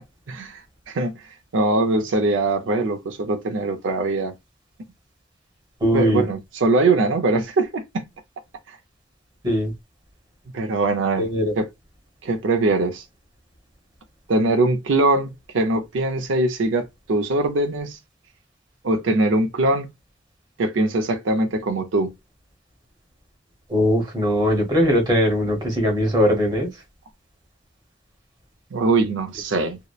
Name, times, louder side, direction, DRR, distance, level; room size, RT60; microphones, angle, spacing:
voice 1, 0.3-0.6 0.9-1.2 1.5-4.3 5.9-8.0 8.7-8.8 10.5-11.3 11.6-11.7 12.2-13.0 14.3-18.0 18.8-19.9 20.6-22.1 28.7-29.8, right 2 dB, 90° right, 0.5 m, -22 dB
voice 2, 5.8-6.2 9.4-9.7 11.2-11.5 23.7-26.7, equal, 25° right, 1.0 m, -20 dB
2.8 x 2.0 x 2.2 m
head